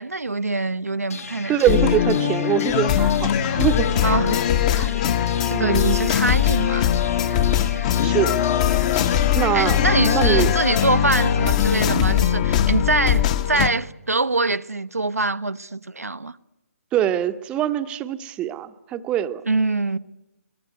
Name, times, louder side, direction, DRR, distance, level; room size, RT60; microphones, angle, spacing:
voice 1, 0.0-1.6 2.2-2.3 4.0-4.5 4.8-4.9 5.5-6.9 9.5-16.3 19.5-20.0, right 3 dB, 80° right, 0.8 m, -24 dB
sound 1, 1.1-13.0, left 3 dB, 75° left, 2.1 m, -36 dB
voice 2, 1.5-3.9 5.5-6.0 8.0-8.4 9.0-9.1 9.3-9.8 10.1-10.5 16.9-19.4, right 11 dB, 15° right, 0.8 m, -23 dB
sound 2, 1.7-13.7, left 10 dB, 25° left, 0.9 m, -20 dB
23.0 x 20.5 x 9.3 m
figure-of-eight pair, 140°, 8 cm